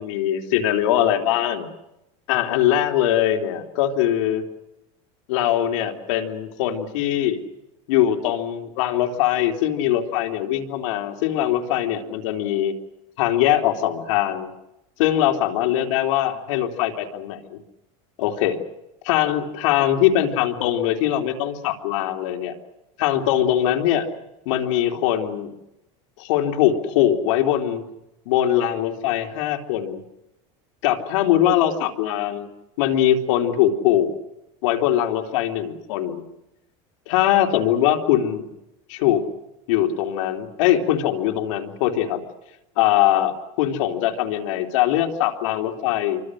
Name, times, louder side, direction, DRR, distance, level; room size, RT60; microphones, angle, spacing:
voice 1, 0.0-1.7 2.3-4.4 5.3-7.4 7.9-12.7 13.2-14.5 15.0-17.6 18.2-18.6 19.0-22.5 23.0-24.0 24.4-25.5 26.2-27.8 28.2-30.0 30.8-32.5 32.8-34.1 34.6-36.2 37.1-38.5 38.9-39.2 39.7-42.2 42.8-46.2, left 11 dB, 85° left, 4 dB, 3.4 m, -21 dB
28.5 x 24.5 x 6.4 m, 0.90 s
supercardioid pair, 140°, 16 cm